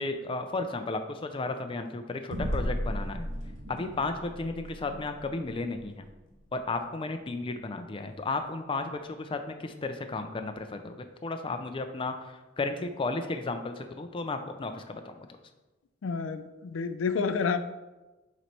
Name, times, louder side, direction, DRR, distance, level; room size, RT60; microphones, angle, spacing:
voice 1, 0.0-3.3 3.7-6.1 6.5-15.3, left 3 dB, 25° left, 7 dB, 0.4 m, -34 dB
sound 1, 2.3-7.1, equal, 90° right, 1.3 m, -36 dB
voice 2, 16.0-17.6, left 5 dB, 85° left, 10 dB, 0.4 m, -29 dB
6.8 x 3.1 x 4.5 m, 1.1 s
head